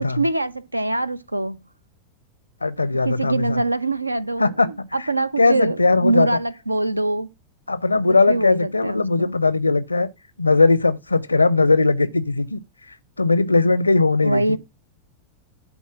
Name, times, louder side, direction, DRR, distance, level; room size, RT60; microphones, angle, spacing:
voice 1, 0.2-1.6 3.0-7.3 8.3-9.4 14.2-14.6, right 2 dB, 85° right, 0.6 m, -24 dB
voice 2, 2.6-3.6 4.4-4.7 5.0-5.1 5.4-6.3 7.7-10.1 10.4-12.6 13.2-14.6, left 3 dB, 80° left, 0.6 m, -19 dB
11.0 x 4.2 x 5.9 m
figure-of-eight pair, 90°, 0 cm